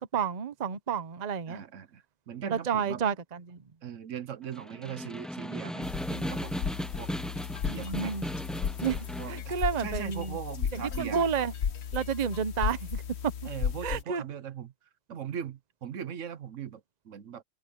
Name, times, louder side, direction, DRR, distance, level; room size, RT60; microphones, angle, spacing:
voice 1, 0.1-1.6 2.5-3.6 7.7-8.2 8.8-10.4 10.7-11.5 11.9-13.3 13.8-14.2, right 7 dB, 35° right, 0.9 m, -30 dB
voice 2, 1.5-3.0 3.8-6.7 7.0-7.1 7.7-8.1 9.2-11.3 13.4-14.7 15.1-17.4, right 8 dB, 70° right, 1.2 m, -40 dB
Snare drum, 4.4-9.4, equal, ahead, 1.0 m, -36 dB
sound 1, 5.8-14.0, left 7 dB, 60° left, 1.1 m, -35 dB
sound 2, 7.4-12.9, left 6 dB, 85° left, 1.9 m, -53 dB
omnidirectional pair, 1.3 m